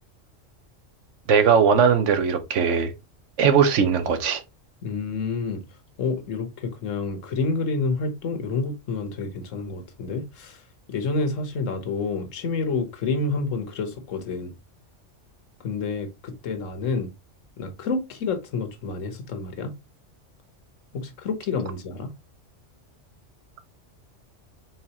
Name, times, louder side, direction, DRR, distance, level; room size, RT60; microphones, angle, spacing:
voice 1, 1.3-2.9 3.4-4.4, right 6 dB, 75° right, 1.1 m, -19 dB
voice 2, 4.8-5.6 6.0-10.6 10.9-14.5 15.6-17.1 17.6-19.7 20.9-22.1, left 4 dB, 90° left, 1.3 m, -28 dB
4.6 x 3.6 x 2.8 m
omnidirectional pair, 1.3 m